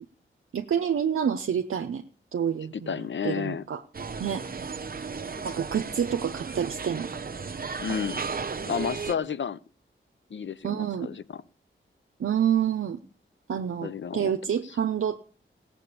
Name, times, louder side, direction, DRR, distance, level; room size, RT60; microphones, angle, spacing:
voice 1, 0.5-2.0 2.3-3.8 4.2-4.4 5.4-7.1 10.6-11.1 12.2-13.0 13.5-15.2, right 8 dB, 80° right, 7 dB, 0.7 m, -28 dB
voice 2, 2.7-3.6 7.8-8.2 8.7-9.6 10.3-11.4 13.8-14.3 14.6-14.7, left 7 dB, 65° left, 16 dB, 0.7 m, -31 dB
sound 1, 3.9-9.1, right 5 dB, 45° right, 0.8 m, -35 dB
16.0 x 7.4 x 6.8 m, 0.43 s
cardioid pair, 55°, 21 cm